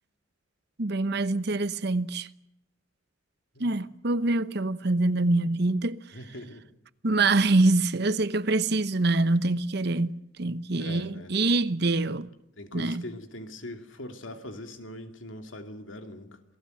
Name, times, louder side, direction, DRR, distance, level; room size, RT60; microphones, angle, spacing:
voice 1, 0.8-2.3 3.6-6.0 7.0-12.3 12.7-13.0, right 2 dB, 55° right, 0.9 m, -25 dB
voice 2, 6.1-6.6 10.8-11.3 12.6-16.4, left 1 dB, 75° left, 2.6 m, -41 dB
28.0 x 18.5 x 7.9 m
head